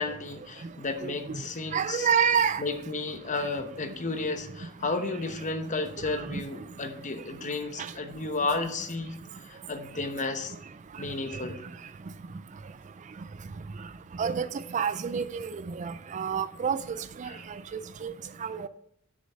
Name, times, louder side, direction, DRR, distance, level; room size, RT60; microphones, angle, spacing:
voice 1, 0.0-2.1 2.6-10.5 11.0-11.6 17.3-17.4, left 3 dB, 35° left, 0.9 m, -33 dB
voice 2, 1.7-2.6 6.3-6.4 14.2-14.5 14.7-15.5 15.8-16.8 17.2-17.3 18.0-18.1 18.4-18.7, right 7 dB, 35° right, 0.4 m, -27 dB
7.4 x 6.4 x 5.6 m
head